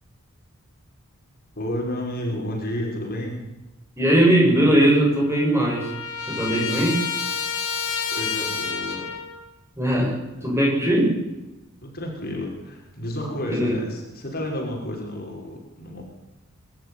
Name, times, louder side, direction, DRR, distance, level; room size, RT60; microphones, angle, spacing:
voice 1, 1.6-3.4 8.1-9.1 10.4-10.5 11.8-16.0, left 1 dB, 45° left, -1 dB, 5.8 m, -31 dB
voice 2, 4.0-5.9 6.3-7.0 9.8-11.2 13.5-13.8, right 1 dB, 10° right, -3 dB, 7.5 m, -20 dB
Trumpet, 4.9-9.4, left 6 dB, 85° left, 7.2 m, -29 dB
23.0 x 13.5 x 9.9 m, 1.0 s
head